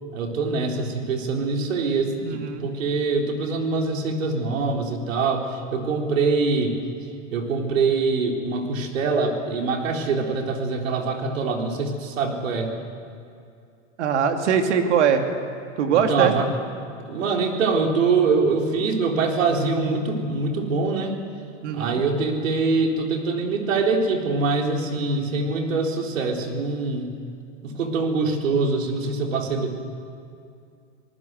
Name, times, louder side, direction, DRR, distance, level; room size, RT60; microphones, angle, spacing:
voice 1, 0.1-6.7 7.3-12.7 15.9-16.5 16.9-21.2 21.7-27.1 27.6-29.8, right 4 dB, 80° right, 2 dB, 4.0 m, -24 dB
voice 2, 2.2-2.7 14.0-15.2 15.8-16.3 21.6-22.0, right 7 dB, 60° right, 5 dB, 2.7 m, -21 dB
26.5 x 19.0 x 8.0 m, 2.5 s
supercardioid pair, 165°, 39 cm